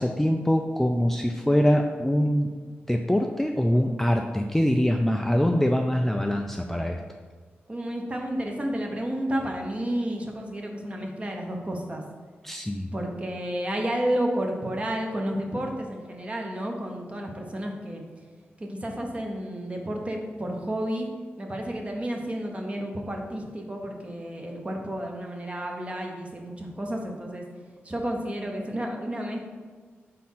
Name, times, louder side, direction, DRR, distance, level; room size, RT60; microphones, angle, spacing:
voice 1, 0.0-2.5 2.9-7.0 12.4-12.9, equal, 5° left, 3 dB, 0.3 m, -23 dB
voice 2, 7.7-12.0 12.9-18.0 18.6-21.1 21.4-27.4 27.8-29.4, right 1 dB, 30° right, 1 dB, 0.9 m, -31 dB
4.2 x 4.1 x 5.6 m, 1.5 s
wide cardioid pair, 85°, 4 cm